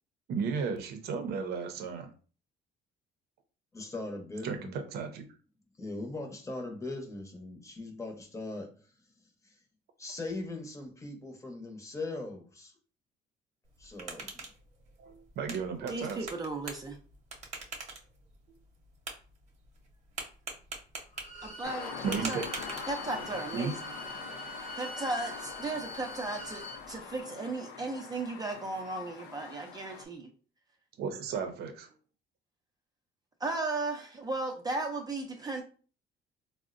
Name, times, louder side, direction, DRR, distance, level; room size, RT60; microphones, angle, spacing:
voice 1, 0.3-2.1 4.4-5.3 15.0-16.3 22.0-22.5 23.5-23.7 31.0-31.9, right 5 dB, 70° right, 7 dB, 0.6 m, -34 dB
voice 2, 3.7-4.7 5.8-8.7 9.4-9.5 10.0-12.7 13.8-14.3, left 2 dB, 20° left, 3 dB, 0.8 m, -40 dB
sound 1, 13.6-23.3, right 3 dB, 40° right, 0.8 m, -45 dB
voice 3, 15.9-17.0 21.4-21.9 22.2-22.4 22.9-23.7 24.8-30.3 33.4-35.6, right 2 dB, 25° right, 1 dB, 0.5 m, -35 dB
Bowed string instrument, 21.1-26.8, equal, 55° left, 1.1 m, -44 dB
sound 2, 21.6-30.0, left 6 dB, 80° left, 0.5 m, -43 dB
3.7 x 2.1 x 2.5 m, 0.38 s
cardioid pair, 110°, 17 cm